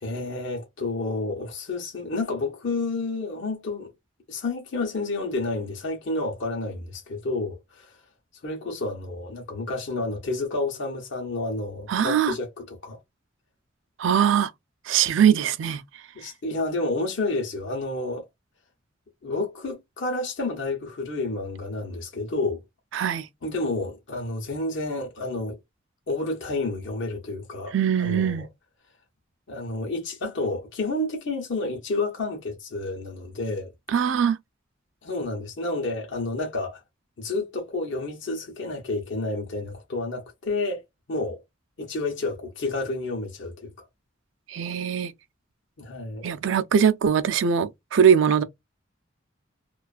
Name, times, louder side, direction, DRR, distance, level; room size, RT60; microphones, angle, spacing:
voice 1, 0.0-3.9 4.3-8.0 8.4-13.0 16.1-18.3 19.2-22.6 23.4-25.6 26.1-28.5 29.5-33.7 35.0-36.8 37.2-40.8 41.1-41.4 41.8-43.9 45.8-46.3, left 2 dB, 65° left, 0.8 m, -30 dB
voice 2, 11.9-12.3 14.0-14.5 14.9-15.8 22.9-23.3 27.7-28.5 33.9-34.4 44.5-45.1 46.2-48.4, right 8 dB, 70° right, 0.4 m, -21 dB
2.4 x 2.3 x 2.4 m
head